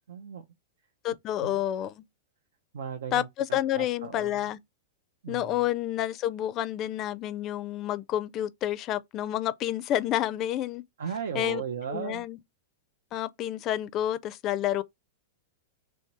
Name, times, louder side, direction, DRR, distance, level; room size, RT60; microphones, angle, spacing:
voice 1, 0.1-0.4 1.4-1.6 2.7-4.5 5.2-5.7 11.0-12.2, right 7 dB, 80° right, 0.5 m, -36 dB
voice 2, 1.0-2.0 3.1-4.6 5.3-10.8 11.3-11.6 11.9-12.4 13.1-14.8, left 12 dB, 40° left, 0.4 m, -29 dB
3.1 x 2.8 x 4.5 m
hypercardioid pair, 115°, 0 cm